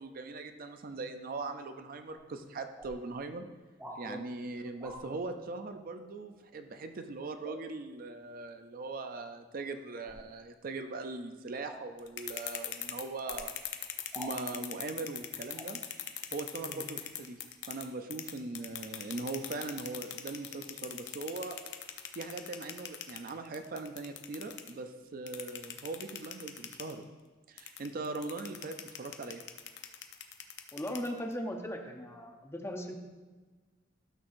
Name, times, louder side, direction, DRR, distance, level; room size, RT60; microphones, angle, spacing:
voice 1, 0.0-3.5 4.0-13.5 14.2-15.8 16.3-17.4 17.7-21.6 22.1-27.0 27.5-29.4, right 3 dB, 50° right, 7 dB, 0.5 m, -40 dB
sound 1, 2.1-2.2 2.7-2.9 3.8-4.0 4.8-5.0 7.4-7.6 10.0-10.3 11.6-11.8 13.2-13.5 14.1-14.3 15.6-15.7, equal, 10° right, 1.2 m, -45 dB
voice 2, 3.8-4.2 4.6-4.7 16.7-16.8 30.7-33.0, equal, 15° left, 4 dB, 0.6 m, -39 dB
sound 2, 12.0-17.8 18.1-24.7 25.3-26.9 27.6-31.3, left 11 dB, 65° left, 0.6 m, -40 dB
12.0 x 6.1 x 2.6 m, 1.3 s
head